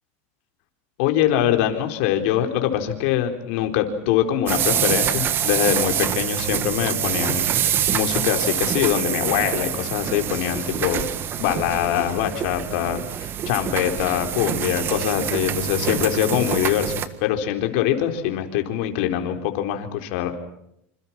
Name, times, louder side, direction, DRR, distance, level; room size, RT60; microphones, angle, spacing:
voice 1, 1.0-11.0 11.4-16.9 17.2-20.4, left 11 dB, 65° left, 5 dB, 4.2 m, -23 dB
sound 1, 4.5-17.1, right 9 dB, 30° right, 1.7 m, -25 dB
27.5 x 27.0 x 6.0 m, 0.77 s
supercardioid pair, 145°, 7 cm